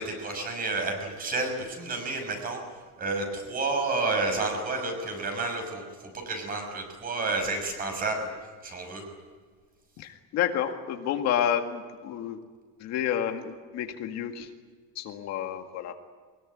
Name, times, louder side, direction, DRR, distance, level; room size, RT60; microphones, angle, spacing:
voice 1, 0.0-2.6 3.0-8.3 8.6-9.0, right 3 dB, 25° right, 4 dB, 6.1 m, -30 dB
voice 2, 10.0-12.4 12.8-14.5 15.0-15.9, left 9 dB, 55° left, 5 dB, 2.0 m, -30 dB
24.0 x 20.5 x 9.8 m, 1.5 s
cardioid pair, 175°, 33 cm